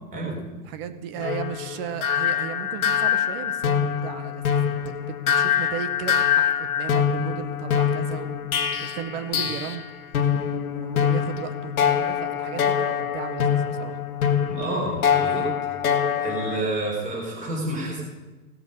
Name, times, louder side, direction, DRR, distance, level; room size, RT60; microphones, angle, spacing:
voice 1, 0.5-8.5 8.8-9.8 10.7-14.0, right 9 dB, 40° right, 11 dB, 0.9 m, -35 dB
sound 1, 1.2-9.9 10.1-16.6, left 8 dB, 75° left, 1.4 m, -24 dB
voice 2, 14.5-15.5 16.2-18.0, right 2 dB, 15° right, -2 dB, 3.5 m, -29 dB
16.0 x 7.0 x 5.4 m, 1.2 s
hypercardioid pair, 135°, 43 cm